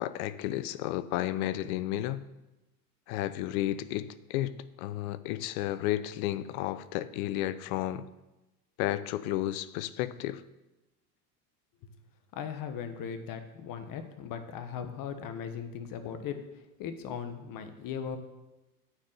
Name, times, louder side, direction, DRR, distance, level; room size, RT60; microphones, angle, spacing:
voice 1, 0.0-2.3 3.1-8.1 8.8-10.4, left 14 dB, 65° left, 0.7 m, -32 dB
voice 2, 12.3-18.2, left 7 dB, 45° left, 1.3 m, -38 dB
9.4 x 4.4 x 6.7 m
hypercardioid pair, 95°, 46 cm